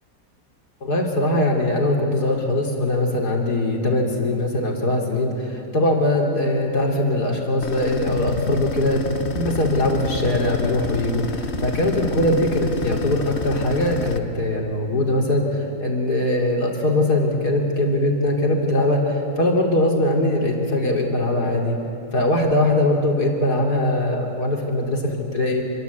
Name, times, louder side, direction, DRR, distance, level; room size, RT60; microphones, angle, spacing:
voice 1, 0.8-21.8 22.1-25.6, left 1 dB, 80° left, 1 dB, 3.8 m, -21 dB
sound 1, 7.6-14.2, left 3 dB, 45° left, 1.3 m, -28 dB
27.0 x 22.5 x 8.3 m, 2.7 s
omnidirectional pair, 1.7 m